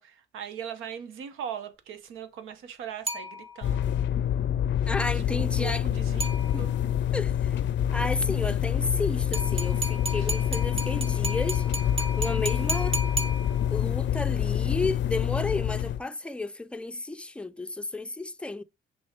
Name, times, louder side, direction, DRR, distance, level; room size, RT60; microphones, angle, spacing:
voice 1, 0.0-3.9 5.1-6.3 6.6-6.7 10.1-10.3, right 8 dB, 85° right, 1.0 m, -39 dB
sound 1, 3.1-3.9 6.2-7.0 9.3-14.0, right 1 dB, 30° right, 1.2 m, -34 dB
sound 2, 3.6-16.0, left 10 dB, 65° left, 0.4 m, -27 dB
voice 2, 4.9-5.9 6.5-6.7 7.1-7.6 7.9-11.7 12.2-13.0 13.7-18.6, left 2 dB, 5° left, 0.4 m, -32 dB
6.3 x 3.6 x 4.4 m
cardioid pair, 90°, 20 cm